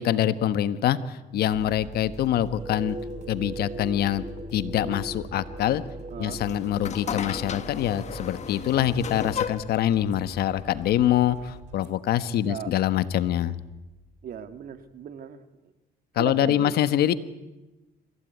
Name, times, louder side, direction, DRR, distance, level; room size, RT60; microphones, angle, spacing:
voice 1, 0.0-3.0 3.3-4.2 4.5-5.8 6.2-13.6 16.1-17.2, left 11 dB, 70° left, 13 dB, 1.3 m, -25 dB
sound 1, 1.5-14.9, right 4 dB, 45° right, 4.0 m, -45 dB
sound 2, 2.6-8.4, right 1 dB, 25° right, 2.5 m, -40 dB
voice 2, 6.1-6.4 12.4-12.7 14.2-15.5 16.2-16.7, right 8 dB, 60° right, 9 dB, 2.0 m, -37 dB
sound 3, 6.3-11.6, left 8 dB, 45° left, 1.3 m, -36 dB
26.5 x 16.0 x 9.4 m, 1.1 s
cardioid pair, 110°, 17 cm